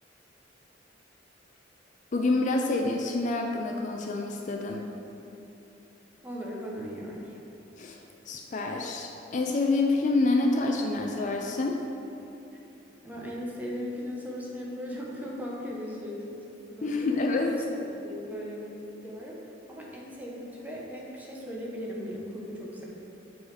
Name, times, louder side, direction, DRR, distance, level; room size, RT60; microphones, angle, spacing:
voice 1, 2.1-4.9 7.8-8.0 8.3-11.8 16.8-17.6, left 2 dB, 40° left, 2 dB, 0.4 m, -27 dB
voice 2, 6.2-7.4 13.0-17.1 17.4-22.9, equal, 10° right, -4 dB, 0.9 m, -38 dB
7.6 x 3.9 x 4.8 m, 2.9 s
head